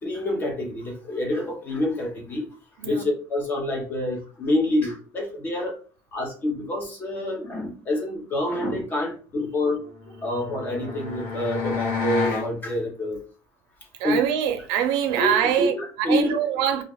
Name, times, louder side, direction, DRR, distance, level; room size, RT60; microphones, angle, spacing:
voice 1, 0.0-2.4 2.8-5.8 6.1-9.9 10.2-13.2 14.0-14.2 15.2-16.3, left 1 dB, 25° left, 0.7 m, -27 dB
sound 1, 9.9-12.5, left 5 dB, 85° left, 1.3 m, -30 dB
voice 2, 14.0-16.8, right 9 dB, 85° right, 0.6 m, -24 dB
2.5 x 2.3 x 3.4 m
cardioid pair, 170°, 8 cm